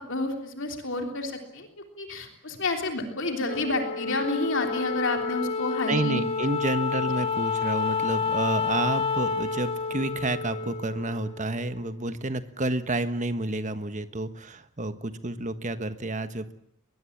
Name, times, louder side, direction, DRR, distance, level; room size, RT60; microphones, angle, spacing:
voice 1, 0.0-1.7 2.0-6.2, left 2 dB, 55° left, 4 dB, 3.4 m, -29 dB
Wind instrument woodwind instrument, 3.5-12.0, left 5 dB, 25° left, 1.5 m, -30 dB
voice 2, 5.9-16.5, right 2 dB, 35° right, 10 dB, 1.4 m, -30 dB
22.0 x 21.5 x 8.7 m, 0.70 s
head